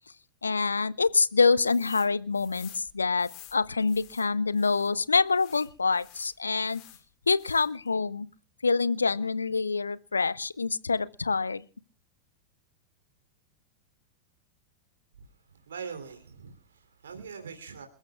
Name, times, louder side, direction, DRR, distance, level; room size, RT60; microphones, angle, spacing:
voice 1, 0.4-6.8 7.3-8.3 8.6-11.6, left 4 dB, 75° left, 0.6 m, -26 dB
sound 1, 1.6-2.1 2.3-4.9 5.3-7.0 7.3-7.9, left 13 dB, 45° left, 3.0 m, -51 dB
voice 2, 15.7-17.9, right 6 dB, 65° right, 3.0 m, -42 dB
27.5 x 14.0 x 2.3 m
figure-of-eight pair, 90°, 0 cm